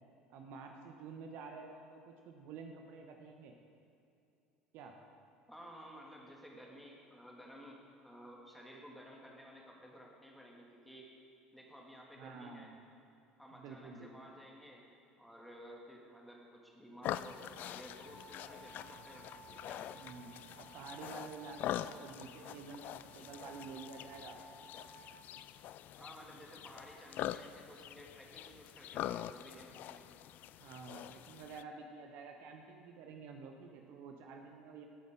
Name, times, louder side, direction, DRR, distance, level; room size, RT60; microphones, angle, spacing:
voice 1, 0.3-3.6 4.7-4.9 12.2-12.8 13.5-14.3 19.9-24.4 30.6-34.9, right 4 dB, 55° right, 3 dB, 1.0 m, -50 dB
voice 2, 5.5-11.1 11.5-12.7 13.4-14.8 15.2-19.9 26.0-30.0, equal, ahead, -2 dB, 2.6 m, -54 dB
sound 1, 17.0-31.6, left 12 dB, 50° left, 0.4 m, -44 dB
sound 2, 17.8-25.4, right 4 dB, 90° right, 1.3 m, -58 dB
18.5 x 9.3 x 3.9 m, 2.7 s
figure-of-eight pair, 60°, 4 cm